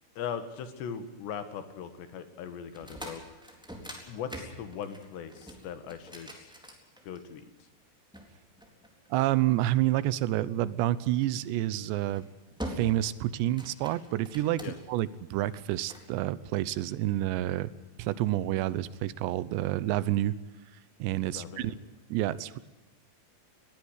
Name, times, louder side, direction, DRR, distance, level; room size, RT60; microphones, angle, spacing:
voice 1, 0.2-3.2 4.1-6.5 7.1-7.5 14.6-14.8 21.3-21.8, left 7 dB, 75° left, 10 dB, 3.9 m, -39 dB
sound 1, 2.7-7.4 8.1-9.4 11.2-11.5 12.0-12.2 12.6-13.1 13.4-15.0 15.5-16.1, equal, ahead, 3.1 m, -43 dB
voice 2, 9.1-12.3 12.6-17.7 18.0-20.4 21.0-21.8 22.1-22.6, right 14 dB, 80° right, 17 dB, 3.0 m, -29 dB
21.5 x 16.5 x 8.2 m, 1.1 s
omnidirectional pair, 5.1 m